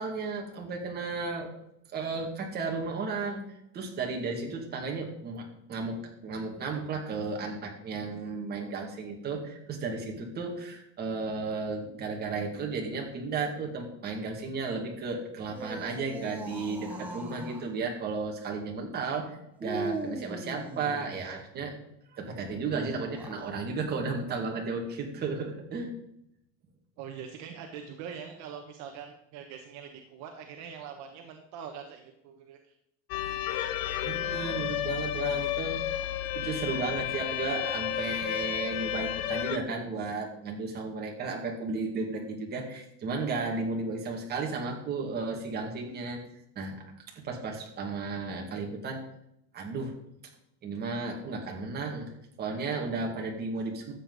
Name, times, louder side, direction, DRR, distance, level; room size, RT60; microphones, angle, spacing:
voice 1, 0.0-1.5 1.9-3.4 3.7-21.7 22.1-25.9 34.0-35.8 36.3-46.2 46.6-46.8 47.1-49.0 49.5-49.9 50.6-52.1 52.4-53.9, right 4 dB, 30° right, 1 dB, 2.3 m, -34 dB
sound 1, 15.4-17.7 19.6-21.4 23.0-23.5, right 2 dB, 5° right, 1.3 m, -39 dB
voice 2, 27.0-32.7, right 7 dB, 55° right, 4 dB, 1.2 m, -43 dB
sound 2, 33.1-39.6, left 11 dB, 75° left, 1.0 m, -32 dB
13.0 x 8.0 x 4.1 m, 0.79 s
cardioid pair, 160°, 34 cm